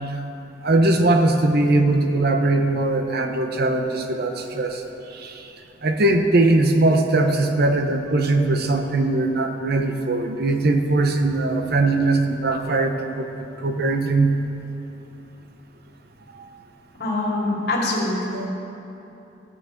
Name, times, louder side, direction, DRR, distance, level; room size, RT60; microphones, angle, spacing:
voice 1, 0.6-4.8 5.2-5.3 5.8-13.2 13.6-14.3 18.3-18.5, right 2 dB, 55° right, 5 dB, 0.8 m, -20 dB
voice 2, 17.0-18.5, left 2 dB, 55° left, -5 dB, 2.4 m, -24 dB
16.0 x 6.6 x 3.9 m, 3.0 s
head